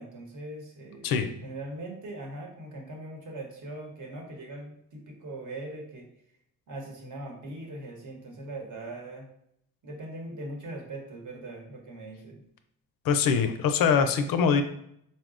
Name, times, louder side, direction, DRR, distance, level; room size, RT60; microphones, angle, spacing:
voice 1, 0.0-1.1 1.4-6.1 6.7-9.3 9.8-12.4, right 2 dB, 50° right, 0 dB, 1.0 m, -40 dB
voice 2, 13.0-14.6, left 6 dB, 60° left, 8 dB, 0.5 m, -23 dB
4.0 x 2.0 x 2.5 m, 0.73 s
cardioid pair, 85°, 38 cm